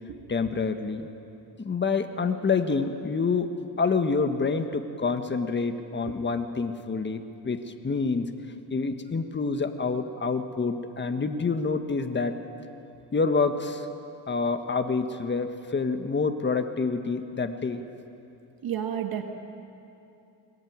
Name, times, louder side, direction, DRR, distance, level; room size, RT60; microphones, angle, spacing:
voice 1, 0.3-1.1 1.6-8.3 8.7-12.4 13.1-13.9 14.3-17.8, left 4 dB, 30° left, 7 dB, 1.6 m, -27 dB
voice 2, 18.6-19.2, right 9 dB, 65° right, 5 dB, 1.8 m, -31 dB
22.5 x 19.5 x 9.6 m, 2.8 s
cardioid pair, 85°, 39 cm